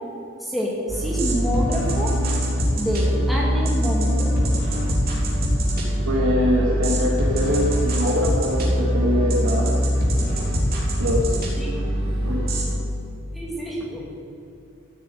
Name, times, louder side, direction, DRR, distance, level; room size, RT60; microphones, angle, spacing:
voice 1, 0.4-2.1 2.8-4.3 11.6-11.8 13.3-14.1, equal, ahead, -4 dB, 2.3 m, -27 dB
sound 1, 0.9-12.7, equal, 45° right, 3.7 m, -22 dB
voice 2, 6.1-9.7 11.0-11.3 12.3-12.4, equal, 70° right, -4 dB, 2.2 m, -23 dB
14.5 x 9.2 x 9.2 m, 2.8 s
head